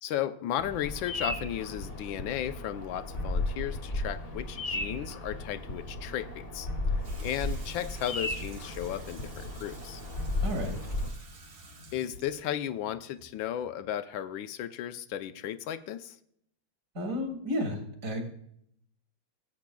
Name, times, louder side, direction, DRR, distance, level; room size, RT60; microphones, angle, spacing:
voice 1, 0.0-6.7 7.2-10.0 11.9-16.2, left 11 dB, 75° left, 11 dB, 1.4 m, -35 dB
Bird vocalization bird call bird song, 0.6-11.1, left 2 dB, 35° left, 1.4 m, -35 dB
Water tap faucet / Sink (filling or washing), 7.0-14.0, right 2 dB, 70° right, 2.4 m, -51 dB
voice 2, 10.4-10.8 16.9-18.2, left 1 dB, 40° right, 3 dB, 2.5 m, -32 dB
17.5 x 8.6 x 2.3 m, 0.69 s
omnidirectional pair, 2.2 m